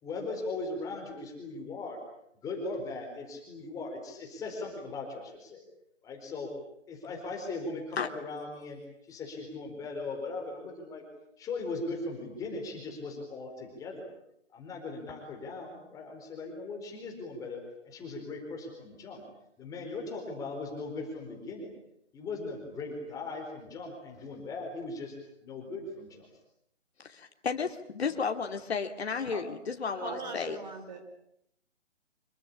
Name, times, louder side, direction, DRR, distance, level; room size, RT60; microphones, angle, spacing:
voice 1, 0.0-2.0 2.4-5.6 6.0-6.5 6.9-8.8 9.1-11.0 11.4-14.1 14.5-17.6 17.8-19.2 19.6-21.7 22.1-25.1 25.4-26.3, left 3 dB, 10° left, 2 dB, 4.4 m, -39 dB
voice 2, 27.0-30.6, left 5 dB, 55° left, 5 dB, 2.8 m, -33 dB
voice 3, 29.9-31.0, right 4 dB, 35° right, 6 dB, 4.8 m, -40 dB
26.5 x 23.5 x 8.6 m, 0.73 s
figure-of-eight pair, 155°, 37 cm